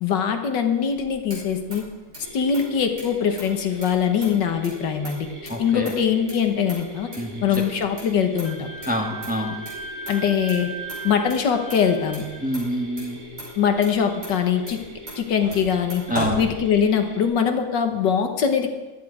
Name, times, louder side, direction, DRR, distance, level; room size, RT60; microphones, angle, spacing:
voice 1, 0.0-1.8 2.3-7.1 7.4-8.7 10.1-10.7 11.0-12.3 13.6-14.8 15.2-16.0 16.4-18.7, left 7 dB, 75° left, 6 dB, 1.8 m, -22 dB
Motor vehicle (road), 0.9-17.1, right 1 dB, 65° right, 5.8 m, -39 dB
Mechanisms, 2.2-17.3, right 1 dB, 40° right, 3.0 m, -41 dB
voice 2, 5.5-5.9 7.2-7.6 8.9-9.6 12.4-13.2 16.1-16.4, equal, 5° right, 2 dB, 1.2 m, -26 dB
Wind instrument woodwind instrument, 8.4-12.4, right 2 dB, 45° left, 5.1 m, -37 dB
15.0 x 12.0 x 4.9 m, 1.1 s
omnidirectional pair, 2.0 m